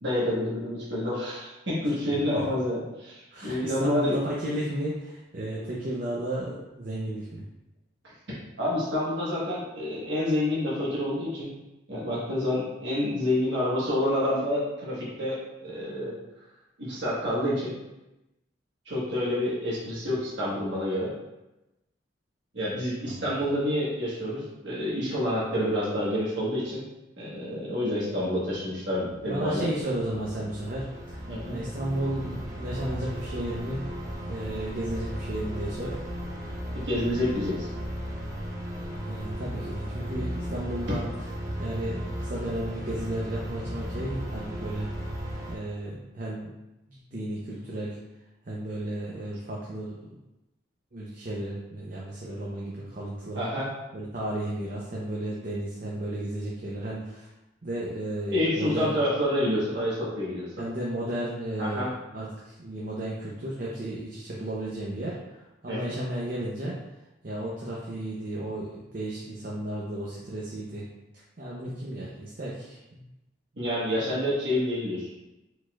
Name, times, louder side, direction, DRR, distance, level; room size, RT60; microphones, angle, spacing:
voice 1, 0.0-4.2 8.6-11.5 11.9-16.2 16.8-17.7 18.9-21.1 22.5-26.8 27.2-29.7 31.3-31.5 36.8-37.7 53.3-53.7 58.3-60.5 61.6-61.9 65.7-66.0 73.6-75.1, left 1 dB, 70° right, -7 dB, 1.3 m, -28 dB
voice 2, 1.8-2.6 3.3-7.4 23.0-23.3 29.2-31.2 31.5-33.8 34.3-36.0 39.0-41.0 41.6-45.0 45.5-46.5 46.9-48.0 48.4-50.1 50.9-53.4 53.9-57.3 57.6-58.9 60.6-66.8 67.2-70.9 71.1-73.0, right 1 dB, 45° right, -4 dB, 0.6 m, -34 dB
sound 1, 29.1-45.6, equal, 15° right, 0.8 m, -36 dB
4.9 x 4.0 x 2.3 m, 0.97 s
head